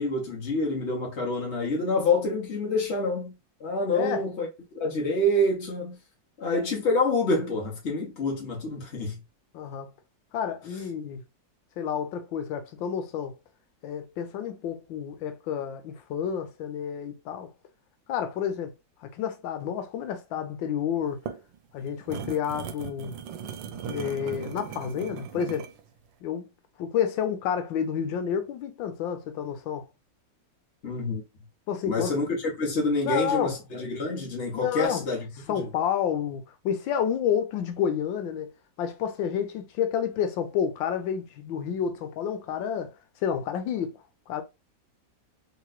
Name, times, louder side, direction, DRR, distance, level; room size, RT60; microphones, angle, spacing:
voice 1, 0.0-3.3 3.6-4.5 4.7-6.0 6.4-9.2 30.8-31.2 31.8-35.3 35.6-35.7, left 2 dB, 45° left, 1.0 m, -27 dB
voice 2, 3.9-4.2 9.5-9.9 10.3-11.2 11.8-13.3 13.8-17.5 18.1-18.7 19.0-21.2 21.7-23.2 23.8-25.7 26.2-26.5 26.8-29.9 31.7-32.2 33.0-33.6 34.5-35.0 35.5-38.5 38.8-42.9 43.2-44.0 44.3-44.4, left 8 dB, 85° left, 1.4 m, -30 dB
sound 1, 21.0-25.8, right 8 dB, 80° right, 1.2 m, -38 dB
3.3 x 3.0 x 2.3 m
omnidirectional pair, 2.0 m